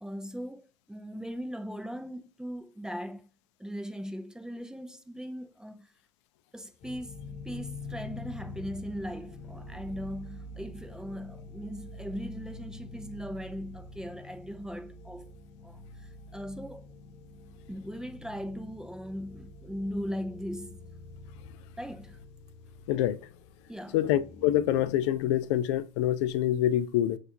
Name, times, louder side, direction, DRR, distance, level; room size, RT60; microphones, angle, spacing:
voice 1, 0.0-3.3 3.6-5.9 6.5-7.2 7.4-15.3 15.6-16.9 17.7-20.9 21.8-22.2 23.7-24.0, equal, 5° right, 0.4 m, -39 dB
sound 1, 6.8-25.4, left 2 dB, 50° left, 0.9 m, -46 dB
voice 2, 22.9-23.2 23.9-27.2, left 12 dB, 65° left, 0.4 m, -26 dB
6.1 x 2.4 x 2.7 m
hypercardioid pair, 85°, 16 cm